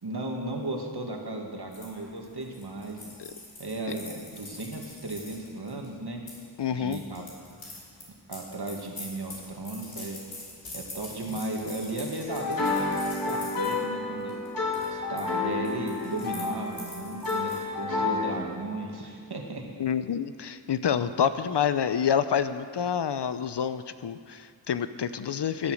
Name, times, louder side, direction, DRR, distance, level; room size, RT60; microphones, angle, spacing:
voice 1, 0.0-3.1 3.6-6.2 6.7-7.2 7.5-7.7 8.3-10.2 10.7-14.4 14.9-19.6, right 2 dB, 55° right, 1 dB, 2.1 m, -35 dB
sound 1, 1.7-6.4 6.9-13.8 14.2-14.5 14.7-15.2 15.5-17.6, left 2 dB, 75° left, 3.9 m, -44 dB
voice 2, 6.6-7.0 19.8-25.7, left 8 dB, 60° left, 12 dB, 0.6 m, -28 dB
sound 2, 12.3-18.4, left 3 dB, 45° left, 3.2 m, -30 dB
15.5 x 8.5 x 6.4 m, 2.1 s
cardioid pair, 50°, 46 cm